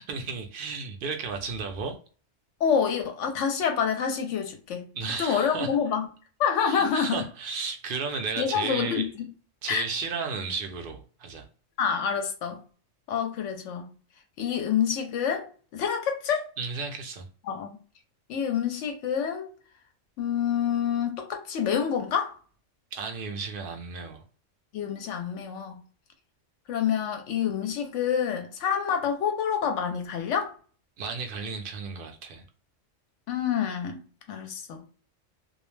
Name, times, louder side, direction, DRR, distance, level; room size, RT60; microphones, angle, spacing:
voice 1, 0.0-2.0 4.9-5.7 6.6-9.1 9.6-11.5 16.6-17.3 22.9-24.2 31.0-32.4, right 5 dB, 60° right, 0.6 m, -33 dB
voice 2, 2.6-4.9 5.2-6.1 6.4-7.2 8.4-9.3 9.7-9.9 11.8-12.6 13.1-13.9 14.4-16.4 17.5-17.8 18.3-19.5 20.2-22.3 24.7-25.8 26.7-30.5 33.3-34.0 34.3-34.8, left 7 dB, 75° left, 0.9 m, -27 dB
2.3 x 2.1 x 3.1 m
omnidirectional pair, 1.3 m